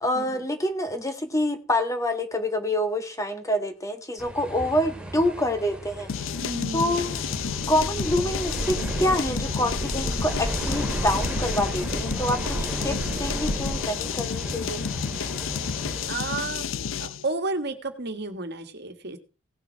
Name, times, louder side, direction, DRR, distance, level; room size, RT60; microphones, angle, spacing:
voice 1, 0.0-6.1 6.7-7.2 7.7-14.8, left 1 dB, 15° left, 6 dB, 1.6 m, -27 dB
sound 1, 4.2-16.1, right 1 dB, 5° right, 2.5 m, -36 dB
sound 2, 6.1-17.3, left 7 dB, 70° left, 0.6 m, -31 dB
voice 2, 6.4-7.1 16.1-16.6 17.0-19.2, right 3 dB, 55° right, 7 dB, 1.7 m, -32 dB
sound 3, 7.4-13.8, right 1 dB, 25° right, 0.7 m, -33 dB
17.5 x 7.1 x 4.6 m, 0.33 s
head